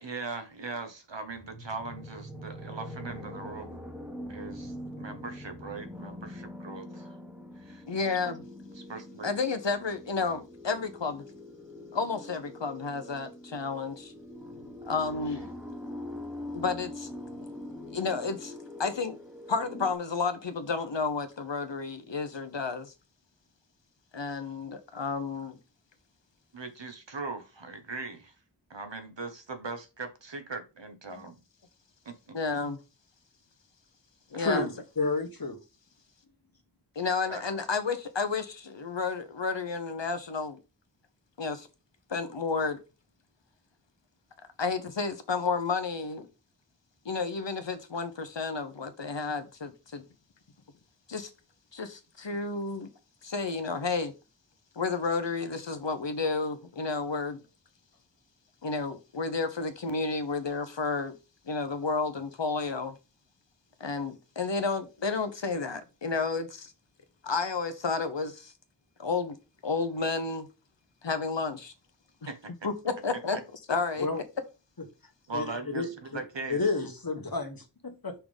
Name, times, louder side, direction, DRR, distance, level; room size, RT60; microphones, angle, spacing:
voice 1, 0.0-3.8 4.3-7.2 7.5-7.8 8.7-9.3 26.5-28.3 28.7-31.4 32.0-32.4 32.6-32.7 34.3-34.6 37.3-37.4 72.3-72.5 73.3-73.4 75.3-76.6, right 3 dB, 85° right, 1.3 m, -40 dB
sound 1, 1.3-19.9, left 1 dB, ahead, 1.5 m, -43 dB
voice 2, 7.9-8.4 9.2-11.2 11.9-14.1 14.8-15.5 16.5-17.1 17.9-18.5 18.8-19.2 19.5-22.9 24.1-25.6 32.3-32.8 34.3-34.7 36.9-40.6 41.4-41.7 42.1-42.8 44.6-46.3 47.0-50.0 51.1-51.3 51.7-52.9 53.2-54.1 54.7-57.4 58.6-61.1 61.4-63.0 63.8-66.7 67.2-68.5 69.0-69.4 69.6-70.5 71.0-71.7 72.6-73.4 73.7-74.1, left 4 dB, 80° left, 1.0 m, -31 dB
voice 3, 34.4-35.6 74.0-74.2 75.3-76.2 76.5-78.1, left 3 dB, 55° left, 1.4 m, -31 dB
5.8 x 3.7 x 5.2 m
wide cardioid pair, 45°, 43 cm